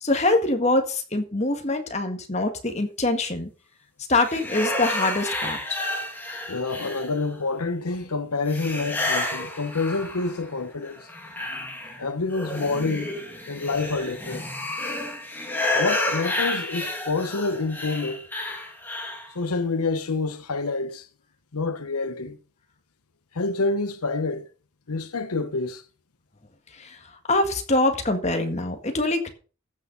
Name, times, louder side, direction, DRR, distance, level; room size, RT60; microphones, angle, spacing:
voice 1, 0.0-3.5 4.1-5.6 26.8-27.0 27.3-29.3, left 2 dB, 30° left, 1.7 m, -24 dB
sound 1, 4.2-7.4 8.5-10.5 10.9-19.3, left 2 dB, 10° left, 2.0 m, -30 dB
voice 2, 6.5-11.1 12.0-13.1 13.5-14.4 15.7-18.3 19.3-21.1 21.5-22.4 23.3-24.5 24.9-25.8, left 3 dB, 85° left, 1.0 m, -27 dB
14.5 x 6.5 x 5.4 m
head